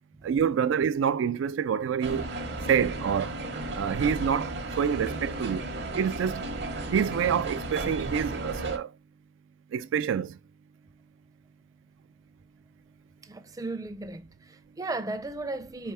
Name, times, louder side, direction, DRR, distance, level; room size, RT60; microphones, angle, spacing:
voice 1, 0.2-2.3 2.7-3.4 3.7-4.5 4.8-5.6 5.9-6.4 6.9-8.9 9.7-10.4, right 7 dB, 85° right, 0.3 m, -27 dB
sound 1, 2.0-8.8, right 2 dB, 60° right, 0.8 m, -34 dB
voice 2, 13.3-15.9, right 2 dB, 20° right, 0.4 m, -35 dB
4.3 x 3.5 x 3.4 m
head